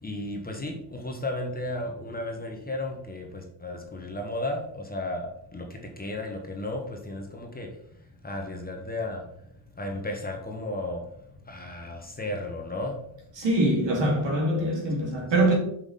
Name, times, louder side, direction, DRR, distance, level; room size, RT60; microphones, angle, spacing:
voice 1, 0.0-7.8 8.2-9.3 9.8-11.1 11.5-13.0, left 1 dB, 20° left, 1.1 m, -34 dB
voice 2, 13.4-15.5, right 1 dB, 60° right, 2.4 m, -23 dB
5.9 x 4.9 x 4.1 m
cardioid pair, 110°, 49 cm